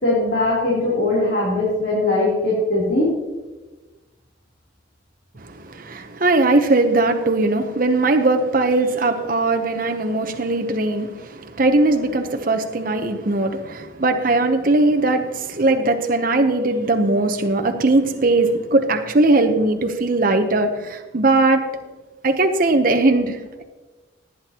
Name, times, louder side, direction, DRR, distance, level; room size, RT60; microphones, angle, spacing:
voice 1, 0.0-3.1, left 2 dB, 50° left, -7 dB, 3.1 m, -20 dB
voice 2, 5.4-21.6 22.2-23.6, right 2 dB, 45° right, 5 dB, 0.8 m, -19 dB
17.5 x 9.6 x 2.9 m, 1.2 s
head